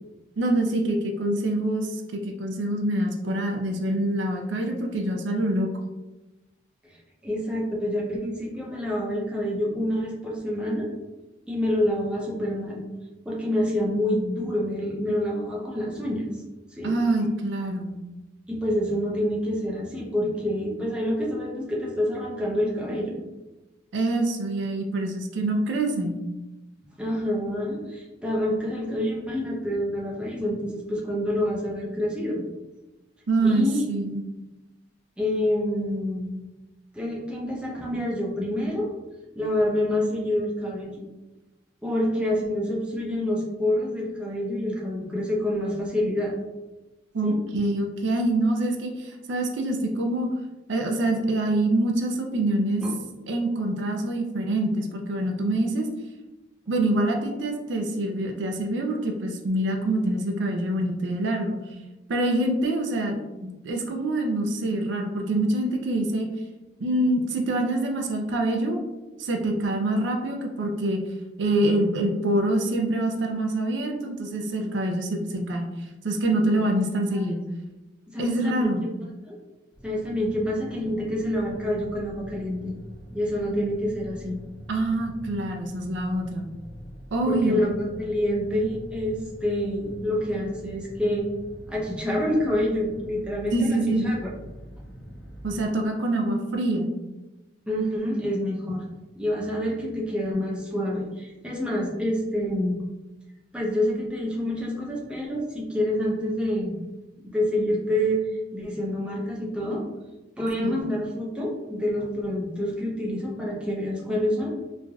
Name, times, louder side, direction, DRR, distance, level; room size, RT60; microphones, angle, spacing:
voice 1, 0.4-5.7 16.8-17.9 23.9-26.2 33.3-34.2 47.1-50.3 50.7-52.8 53.3-55.9 56.7-61.6 62.1-66.3 66.8-68.8 69.2-71.0 71.4-75.7 76.0-77.4 78.2-78.8 84.7-86.5 87.1-87.7 93.5-94.1 95.4-96.9 110.6-110.7, right 1 dB, 75° right, 2 dB, 0.4 m, -25 dB
voice 2, 7.2-10.9 11.5-12.8 13.2-16.3 16.7-16.9 18.5-23.2 27.0-32.4 33.4-33.9 35.2-36.3 36.9-38.9 39.4-41.0 41.8-46.3 47.2-47.4 52.8-53.0 77.1-77.2 78.1-78.7 79.3-79.4 79.8-82.7 83.1-84.4 87.2-91.3 91.7-94.3 97.7-98.8 99.2-102.8 103.5-106.8 107.3-108.2 108.5-109.8 110.4-114.5, left 1 dB, 5° right, -4 dB, 0.6 m, -27 dB
sound 1, 79.7-95.7, equal, 15° left, 1.4 m, -44 dB
3.1 x 2.5 x 2.3 m, 1.1 s
head